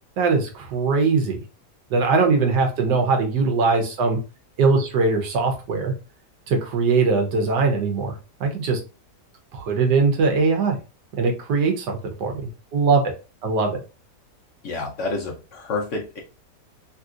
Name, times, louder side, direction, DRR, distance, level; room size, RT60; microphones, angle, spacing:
voice 1, 0.2-1.4 1.9-4.2 4.6-5.9 6.5-8.8 9.5-10.8 11.2-13.1 13.4-13.8, right 4 dB, 85° right, 3 dB, 1.4 m, -21 dB
voice 2, 14.6-16.2, left 3 dB, 60° left, 0 dB, 0.8 m, -29 dB
3.3 x 2.8 x 2.4 m, 0.32 s
omnidirectional pair, 1.8 m